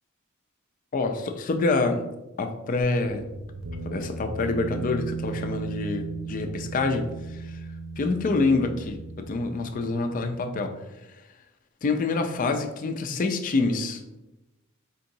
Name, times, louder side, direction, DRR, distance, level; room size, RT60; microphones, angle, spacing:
voice 1, 0.9-2.0 2.4-3.2 3.8-7.5 8.0-9.0 9.3-10.8 11.8-14.0, left 3 dB, 40° left, 6 dB, 0.4 m, -26 dB
sound 1, 2.8-10.2, right 4 dB, 85° right, 0.5 m, -37 dB
4.4 x 2.9 x 2.6 m, 0.99 s
head